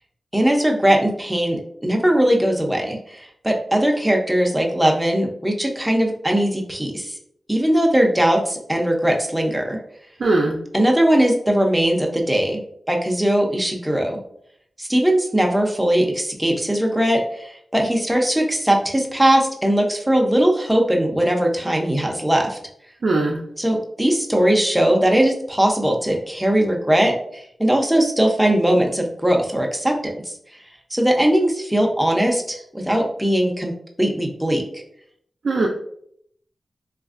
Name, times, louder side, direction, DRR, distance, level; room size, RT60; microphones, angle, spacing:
voice 1, 0.3-7.2 7.5-9.8 10.7-12.6 12.9-14.2 14.8-22.6 23.6-30.1 30.9-33.7 34.0-34.8, right 1 dB, 5° right, 0 dB, 0.5 m, -19 dB
voice 2, 10.2-10.6 23.0-23.4 35.4-35.7, right 2 dB, 65° right, -2 dB, 0.4 m, -19 dB
3.9 x 2.4 x 2.4 m, 0.70 s
wide cardioid pair, 140°, 0 cm